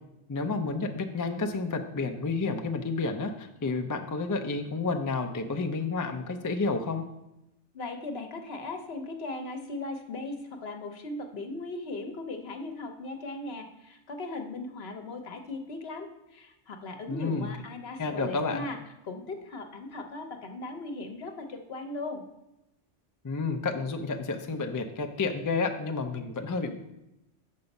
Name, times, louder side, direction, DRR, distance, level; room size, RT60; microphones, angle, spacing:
voice 1, 0.3-7.0 17.1-17.5 18.0-18.7 23.2-26.7, left 3 dB, 30° left, 5 dB, 0.3 m, -30 dB
voice 2, 7.7-18.8 19.0-22.2, left 2 dB, 60° left, 5 dB, 1.1 m, -38 dB
7.0 x 5.3 x 5.3 m, 0.92 s
omnidirectional pair, 1.2 m